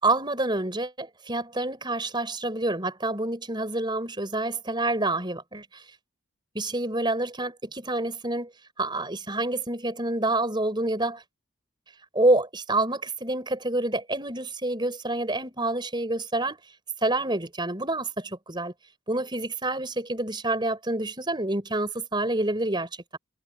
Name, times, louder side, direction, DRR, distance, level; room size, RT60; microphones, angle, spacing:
voice 1, 0.0-5.8 6.5-8.5 8.8-11.2 12.1-16.6 17.0-18.7 19.1-23.2, right 2 dB, 20° right, 5.7 m, -27 dB
head